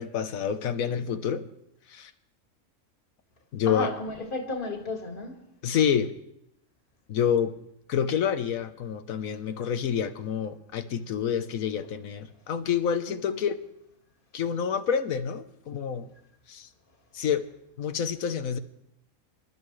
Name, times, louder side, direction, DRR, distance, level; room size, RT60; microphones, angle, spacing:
voice 1, 0.0-1.4 1.9-2.1 3.5-3.9 5.6-6.1 7.1-7.5 7.9-13.6 14.3-16.1 16.5-16.7 17.1-17.4 17.8-18.6, left 8 dB, 85° left, 9 dB, 1.3 m, -28 dB
voice 2, 3.7-5.4 13.1-13.4, left 3 dB, 40° left, 2 dB, 2.2 m, -33 dB
26.0 x 12.5 x 3.2 m, 0.79 s
omnidirectional pair, 1.4 m